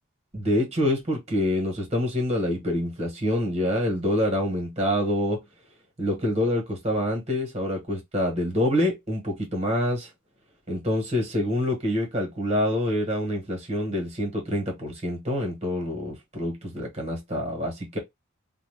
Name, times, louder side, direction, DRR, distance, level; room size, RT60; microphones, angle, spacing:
voice 1, 0.3-5.4 6.0-10.1 10.7-18.0, left 1 dB, 30° right, 1.2 m, -26 dB
2.5 x 2.2 x 3.3 m
head